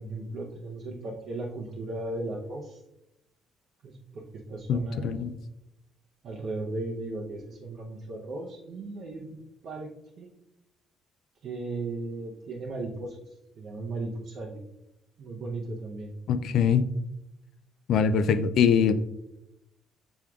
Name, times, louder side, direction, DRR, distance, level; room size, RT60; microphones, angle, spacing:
voice 1, 0.0-2.8 3.8-4.2 4.5-5.2 6.2-9.4 9.6-9.9 10.2-10.3 11.4-13.2 13.6-14.6 15.2-16.1, right 2 dB, 55° right, -1 dB, 0.6 m, -36 dB
voice 2, 4.7-5.3 16.3-16.8 17.9-18.9, left 7 dB, 65° left, 12 dB, 0.3 m, -23 dB
6.1 x 3.5 x 2.3 m, 0.87 s
cardioid pair, 135°, 0 cm